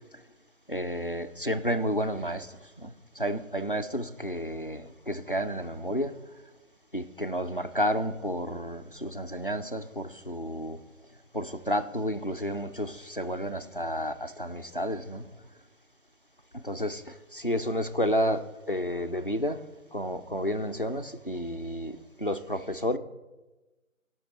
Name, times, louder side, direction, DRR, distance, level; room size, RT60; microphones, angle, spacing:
voice 1, 0.7-2.5 2.8-6.1 6.9-10.8 11.3-15.3 16.5-19.6 19.9-23.0, equal, 40° left, 9 dB, 0.4 m, -31 dB
17.0 x 6.1 x 3.9 m, 1.1 s
figure-of-eight pair, 165°, 42 cm